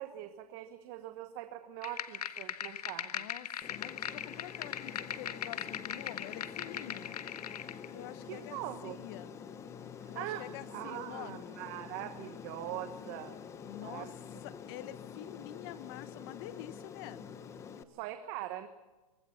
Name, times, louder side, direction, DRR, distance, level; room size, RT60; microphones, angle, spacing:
voice 1, 0.0-3.3 8.2-9.0 10.0-13.3 13.8-14.1 17.9-18.7, right 13 dB, 35° right, 9 dB, 1.2 m, -42 dB
sound 1, 1.8-7.9, left 9 dB, 85° left, 1.5 m, -40 dB
voice 2, 3.1-7.2 7.9-9.4 10.1-11.5 13.6-14.1 14.4-17.2, left 13 dB, 40° left, 16 dB, 0.9 m, -47 dB
Aircraft, 3.6-17.8, left 7 dB, 15° left, 0.9 m, -47 dB
24.5 x 19.0 x 5.7 m, 1.2 s
hypercardioid pair, 155°, 19 cm